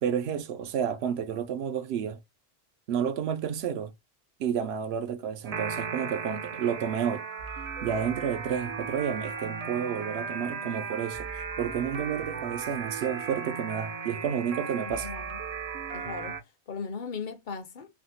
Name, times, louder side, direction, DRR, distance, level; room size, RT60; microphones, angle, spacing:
voice 1, 0.0-2.2 2.9-3.9 4.4-7.2 7.8-15.1, right 8 dB, 80° right, 0.8 m, -30 dB
sound 1, 5.4-16.4, right 5 dB, 45° right, 0.5 m, -36 dB
voice 2, 14.8-15.4 15.9-16.4 16.7-17.9, left 5 dB, 60° left, 0.6 m, -38 dB
3.4 x 2.4 x 2.6 m
omnidirectional pair, 1.1 m